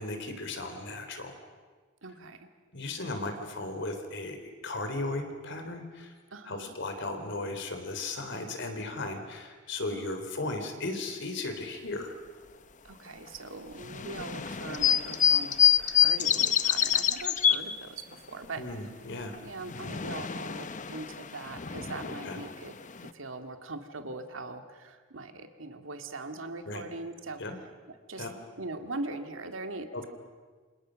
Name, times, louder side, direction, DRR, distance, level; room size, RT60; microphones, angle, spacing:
voice 1, 0.0-1.4 2.7-6.1 6.5-12.2 18.6-19.3 22.1-22.4 26.7-26.8 27.4-27.6 28.2-28.3 29.9-30.1, left 2 dB, 65° left, 7 dB, 3.7 m, -36 dB
voice 2, 2.0-2.5 6.3-6.8 9.9-10.2 12.8-18.7 19.4-22.7 23.1-27.4 28.1-28.3 28.6-29.9, right 3 dB, 75° right, 7 dB, 2.1 m, -41 dB
sound 1, 13.8-17.6 19.3-23.1, left 9 dB, 40° left, 0.8 m, -27 dB
28.5 x 26.5 x 6.4 m, 1.5 s
head